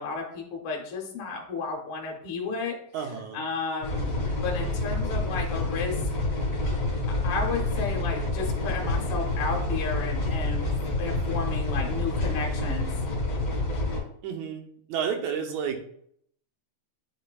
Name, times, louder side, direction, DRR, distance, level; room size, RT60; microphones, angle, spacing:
voice 1, 0.0-2.8 3.3-6.1 7.1-10.7 11.0-12.9, left 4 dB, 60° left, 0 dB, 1.8 m, -33 dB
voice 2, 2.9-3.4 14.2-15.9, right 7 dB, 80° right, 3 dB, 2.2 m, -31 dB
sound 1, 3.8-14.0, left 2 dB, 40° left, 2.2 m, -28 dB
9.5 x 4.3 x 2.4 m, 0.67 s
omnidirectional pair, 3.3 m